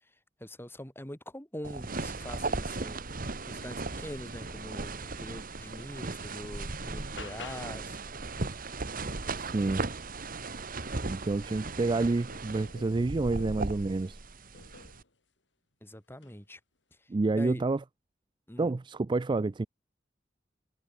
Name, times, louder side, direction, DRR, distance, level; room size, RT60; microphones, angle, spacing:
voice 1, 0.4-8.0 15.8-16.6 17.3-17.6 18.5-18.7, left 1 dB, 10° left, 5.9 m, -43 dB
sound 1, 1.6-15.0, right 3 dB, 50° right, 1.9 m, -37 dB
sound 2, 5.6-5.7 6.1-8.0 10.3-10.4 10.9-13.8 14.5-15.1 16.1-16.4, left 3 dB, 70° left, 7.3 m, -49 dB
voice 2, 9.3-9.9 11.1-14.2 17.1-17.8 18.6-19.7, right 3 dB, 25° right, 0.4 m, -29 dB
head